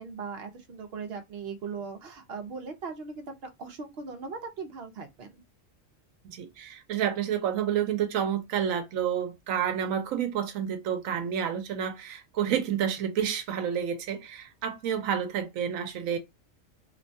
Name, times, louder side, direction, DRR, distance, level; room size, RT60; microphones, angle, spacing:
voice 1, 0.0-3.3 3.6-5.4, right 5 dB, 55° right, 0.8 m, -39 dB
voice 2, 6.2-16.2, right 9 dB, 85° right, 1.0 m, -29 dB
3.0 x 2.2 x 2.5 m
omnidirectional pair, 1.4 m